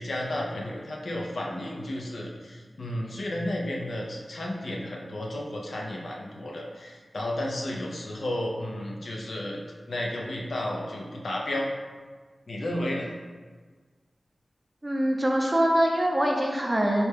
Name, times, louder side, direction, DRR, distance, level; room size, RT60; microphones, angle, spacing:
voice 1, 0.0-9.6 9.9-11.7 12.5-13.1, left 1 dB, 80° left, -1 dB, 0.5 m, -32 dB
voice 2, 14.8-17.1, right 1 dB, 25° right, 0 dB, 0.5 m, -24 dB
4.2 x 2.2 x 3.3 m, 1.5 s
wide cardioid pair, 90°, 0 cm